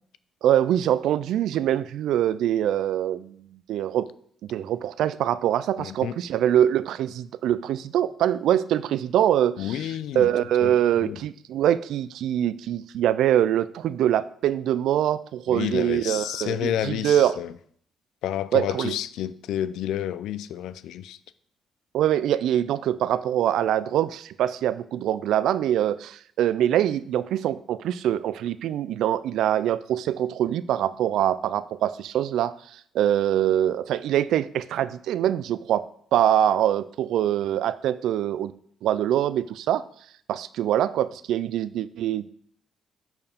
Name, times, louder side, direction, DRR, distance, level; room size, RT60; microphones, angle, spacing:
voice 1, 0.4-3.4 3.7-4.1 4.5-17.4 18.5-19.0 21.9-32.5 32.9-38.5 38.8-39.8 40.3-42.3, right 11 dB, 80° right, 0.3 m, -24 dB
voice 2, 5.8-6.1 9.6-10.3 10.6-10.7 11.0-11.2 15.5-17.5 18.2-21.2, left 11 dB, 85° left, 0.3 m, -30 dB
10.5 x 4.6 x 3.5 m
cardioid pair, 90°, 0 cm